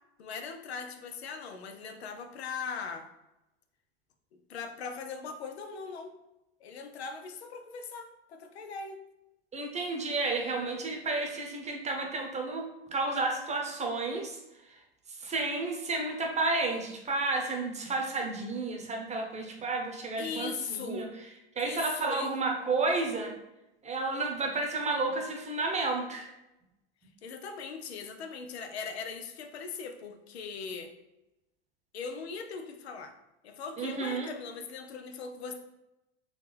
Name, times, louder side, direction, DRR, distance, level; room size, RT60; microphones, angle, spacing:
voice 1, 0.2-3.1 4.5-6.1 6.6-9.0 20.2-21.1 21.6-22.3 27.2-30.9 31.9-33.2 33.4-35.5, left 5 dB, 85° left, 6 dB, 0.6 m, -40 dB
voice 2, 9.5-14.4 14.7-14.8 15.1-21.1 21.6-23.3 23.8-26.3 33.8-34.3, right 3 dB, 20° right, 2 dB, 0.8 m, -31 dB
4.0 x 3.1 x 3.2 m, 0.94 s
hypercardioid pair, 95°, 31 cm